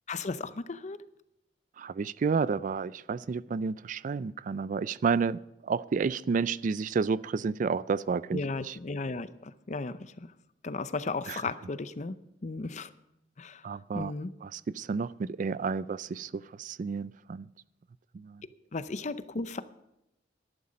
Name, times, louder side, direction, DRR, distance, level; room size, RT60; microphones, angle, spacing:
voice 1, 0.1-1.0 8.3-10.3 10.6-12.2 12.4-12.9 13.4-13.6 13.9-14.3 18.7-19.6, left 3 dB, 40° left, 14 dB, 0.6 m, -35 dB
voice 2, 1.8-8.8 11.3-11.4 13.6-14.1 14.4-17.5 18.1-18.4, right 5 dB, 45° right, 19 dB, 0.3 m, -31 dB
12.5 x 11.5 x 5.2 m, 0.88 s
head